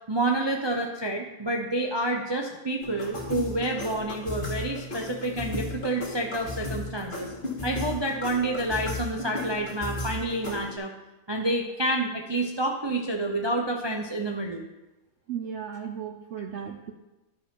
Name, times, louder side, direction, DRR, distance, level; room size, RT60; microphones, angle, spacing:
voice 1, 0.1-7.3 7.6-10.9 11.3-14.7, right 1 dB, 30° right, 2 dB, 0.5 m, -28 dB
sound 1, 2.8-10.8, left 2 dB, 35° left, 2.0 m, -35 dB
voice 2, 15.3-16.9, right 8 dB, 65° right, 4 dB, 0.8 m, -35 dB
11.5 x 4.9 x 5.4 m, 1.0 s
omnidirectional pair, 1.6 m